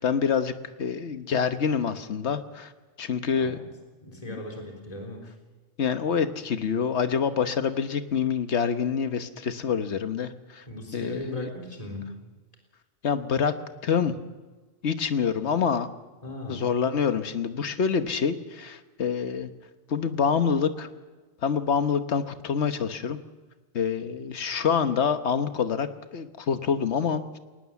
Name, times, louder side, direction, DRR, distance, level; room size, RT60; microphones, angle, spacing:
voice 1, 0.0-2.7 3.0-3.6 4.3-4.4 5.8-10.6 10.9-11.5 13.0-13.5 13.8-14.1 14.8-15.9 16.5-19.5 19.9-20.9 21.4-23.2 23.7-27.4, left 6 dB, 65° left, 10 dB, 1.3 m, -26 dB
voice 2, 3.3-3.7 4.0-5.3 10.7-12.1 16.2-16.6, left 1 dB, 30° left, 1 dB, 3.7 m, -38 dB
21.5 x 19.0 x 7.2 m, 1.3 s
omnidirectional pair, 1.3 m